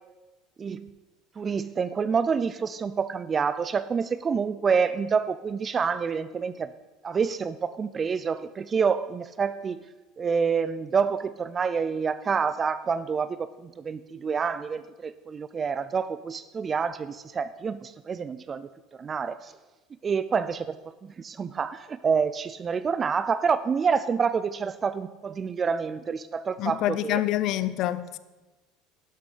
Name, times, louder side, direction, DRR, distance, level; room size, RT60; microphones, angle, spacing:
voice 1, 0.6-0.9 1.4-6.7 7.0-9.8 10.2-19.5 20.0-20.8 21.0-27.2, right 6 dB, 20° right, 0.4 m, -27 dB
voice 2, 26.6-28.2, left 14 dB, 50° left, 0.6 m, -27 dB
12.0 x 11.5 x 5.0 m
cardioid pair, 150°, 0 cm